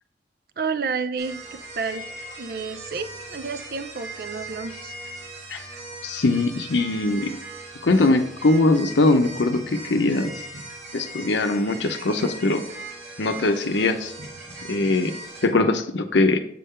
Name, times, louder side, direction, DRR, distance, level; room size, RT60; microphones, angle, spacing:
voice 1, 0.6-2.1 2.4-4.9, right 5 dB, 55° right, 11 dB, 0.4 m, -30 dB
sound 1, 1.2-15.5, right 2 dB, 90° right, 2.1 m, -39 dB
voice 2, 6.0-7.4 7.8-10.4 10.9-12.7 13.2-14.1 14.7-15.1 15.4-16.4, left 2 dB, 85° left, 6 dB, 0.7 m, -21 dB
7.5 x 3.7 x 5.6 m, 0.71 s
head